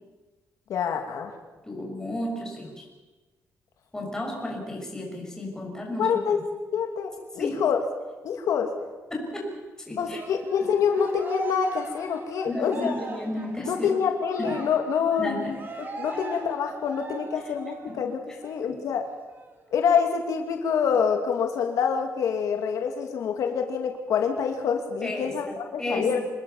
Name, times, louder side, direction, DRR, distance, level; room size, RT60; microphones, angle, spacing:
voice 1, 0.7-1.3 6.0-6.4 6.7-7.8 8.2-8.7 10.0-12.9 13.7-15.5 16.0-19.0 19.7-26.2, left 7 dB, 80° left, 4 dB, 2.4 m, -26 dB
voice 2, 1.6-2.9 3.9-6.2 7.4-7.6 9.1-9.5 9.9-10.2 12.5-13.9 14.4-14.6 15.2-15.6 16.1-16.2 17.9-18.1 18.6-18.9 25.0-26.2, left 1 dB, 10° left, 0 dB, 6.8 m, -33 dB
Cheering, 10.1-18.0 18.4-18.6 19.0-20.0, right 3 dB, 35° right, 3.4 m, -39 dB
26.5 x 20.0 x 7.1 m, 1.2 s
cardioid pair, 140°, 6 cm